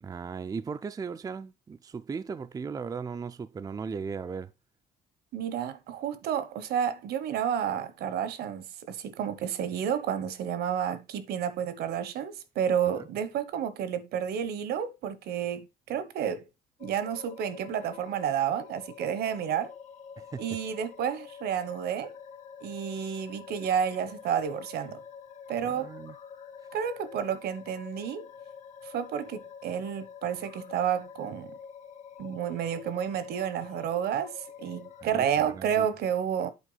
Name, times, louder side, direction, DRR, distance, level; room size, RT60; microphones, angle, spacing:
voice 1, 0.0-4.5 13.0-13.1 20.2-20.4 25.6-26.2 35.0-35.9, right 5 dB, 20° right, 0.4 m, -37 dB
voice 2, 5.3-16.4 16.8-19.7 20.4-22.1 22.6-25.0 25.5-25.9 26.7-28.3 28.8-31.5 32.2-36.5, right 8 dB, 70° right, 1.1 m, -30 dB
sound 1, 16.8-35.0, left 7 dB, 45° left, 1.0 m, -47 dB
8.3 x 4.4 x 4.0 m
cardioid pair, 110°, 17 cm